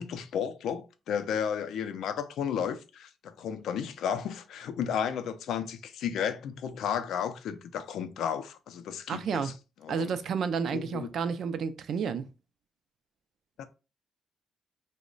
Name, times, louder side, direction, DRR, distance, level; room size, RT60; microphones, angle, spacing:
voice 1, 0.0-9.5 9.8-10.1 10.7-11.1 13.6-13.7, left 8 dB, 75° left, 0.4 m, -33 dB
voice 2, 9.1-9.5 9.9-12.3, right 6 dB, 55° right, 0.3 m, -31 dB
3.0 x 2.1 x 3.7 m
cardioid pair, 165°, 0 cm